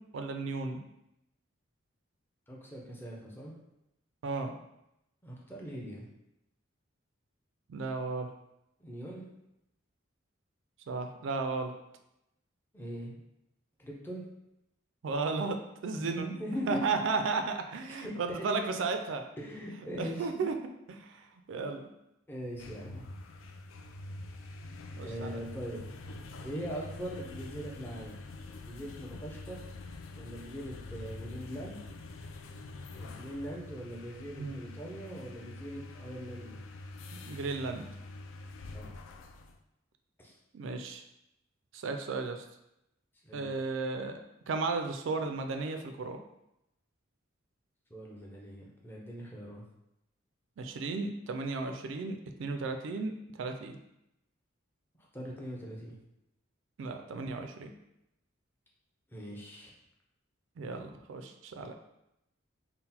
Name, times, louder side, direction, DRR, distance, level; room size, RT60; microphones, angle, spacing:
voice 1, 0.1-0.8 4.2-4.5 7.7-8.3 10.9-11.7 15.0-15.6 15.8-16.3 16.7-19.3 20.0-20.5 20.9-21.9 25.0-25.4 34.4-34.6 37.1-37.9 40.5-41.0 41.7-42.5 43.3-44.1 44.5-46.2 50.6-53.1 53.4-53.8 56.8-57.7 60.6-61.7, right 4 dB, 65° right, 6 dB, 0.4 m, -34 dB
voice 2, 2.5-3.5 5.2-6.1 8.8-9.2 12.7-13.2 13.8-14.2 16.0-16.8 17.9-18.6 19.4-20.5 22.3-23.1 25.0-25.8 26.4-28.2 28.7-29.7 30.2-31.8 32.9-36.6 38.7-38.9 40.2-40.3 43.2-43.5 47.9-49.6 55.1-56.0 59.1-59.7, equal, 10° left, -3 dB, 0.6 m, -41 dB
sound 1, 22.4-39.6, left 2 dB, 75° left, 0.3 m, -46 dB
3.8 x 2.1 x 4.2 m, 0.85 s
head